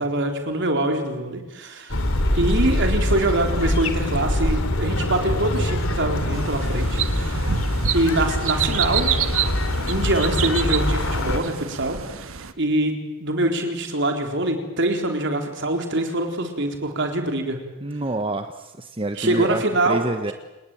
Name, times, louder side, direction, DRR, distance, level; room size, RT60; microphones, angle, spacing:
voice 1, 0.0-2.0 2.3-7.5 7.9-9.1 9.9-12.0 12.6-12.9 13.2-17.6 19.2-20.3, right 1 dB, 60° right, 4 dB, 4.1 m, -24 dB
sound 1, 1.9-11.4, left 1 dB, 85° left, 3.0 m, -24 dB
sound 2, 6.3-12.5, right 8 dB, 80° right, 1.4 m, -28 dB
voice 2, 17.8-20.3, right 2 dB, 25° right, 7 dB, 1.2 m, -27 dB
29.0 x 19.5 x 9.2 m, 1.1 s
head